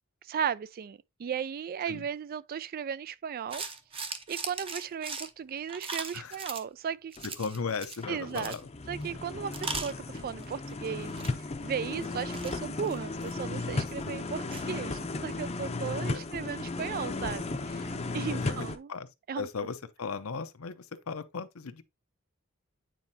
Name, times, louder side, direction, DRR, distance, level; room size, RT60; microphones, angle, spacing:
voice 1, 0.2-3.6 4.3-7.1 8.1-8.5 8.9-11.2 11.6-18.9 19.3-19.5, right 7 dB, 45° right, 0.3 m, -36 dB
sound 1, 3.5-6.6 7.1-8.0 8.3-8.6 9.0-9.1 9.5-10.7 11.0-11.3 11.9-13.6 14.0-14.1 14.5-14.6, right 4 dB, 25° right, 0.8 m, -39 dB
voice 2, 7.2-8.7 13.5-14.5 16.0-16.2 18.3-19.1 19.3-21.8, left 5 dB, 75° left, 0.7 m, -37 dB
sound 2, 7.2-7.3 7.8-18.8, left 3 dB, 30° left, 0.6 m, -35 dB
9.2 x 4.3 x 2.7 m
head